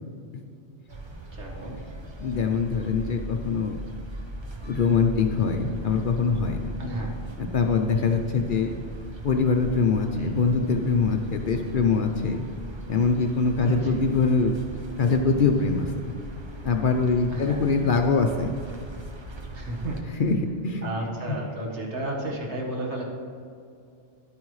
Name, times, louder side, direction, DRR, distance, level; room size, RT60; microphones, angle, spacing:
sound 1, 0.9-20.0, right 1 dB, 30° right, 0.7 m, -39 dB
voice 1, 1.3-1.8 6.8-7.1 10.1-10.5 13.6-14.0 17.3-17.7 19.5-20.2 20.8-23.0, right 1 dB, 70° right, -1 dB, 1.8 m, -33 dB
voice 2, 2.2-3.8 4.6-6.8 7.4-8.7 9.2-12.4 12.9-14.5 15.0-16.1 16.6-18.5 20.2-20.4 20.6-20.9 21.3-21.4, left 4 dB, 55° left, 3 dB, 0.6 m, -23 dB
11.5 x 9.1 x 3.2 m, 2.4 s
omnidirectional pair, 1.2 m